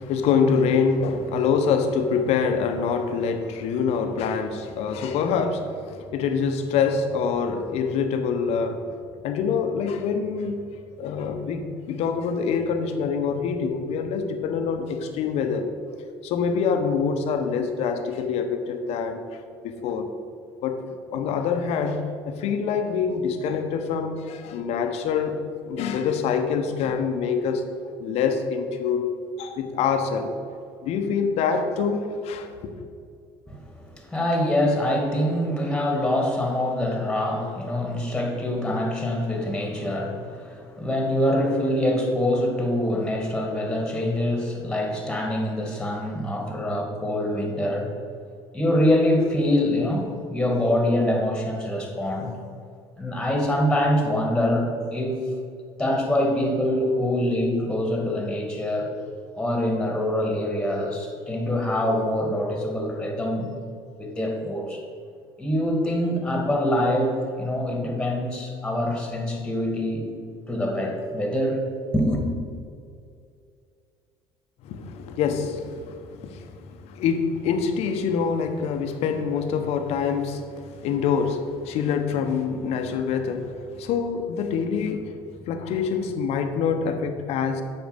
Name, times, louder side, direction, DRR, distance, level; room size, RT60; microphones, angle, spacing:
voice 1, 0.0-8.9 9.2-10.7 11.0-15.7 16.2-20.1 20.6-20.8 21.1-25.4 25.7-27.6 28.0-29.1 29.4-30.3 30.8-32.7 74.6-85.2 85.5-87.6, left 6 dB, 65° left, 6 dB, 0.9 m, -25 dB
voice 2, 33.5-47.9 48.5-52.3 53.0-55.2 55.8-58.9 59.3-63.5 64.0-64.8 65.4-70.1 70.5-71.6 71.9-72.3, left 1 dB, 5° left, 1 dB, 2.1 m, -24 dB
8.1 x 5.4 x 5.1 m, 2.4 s
supercardioid pair, 75°, 11 cm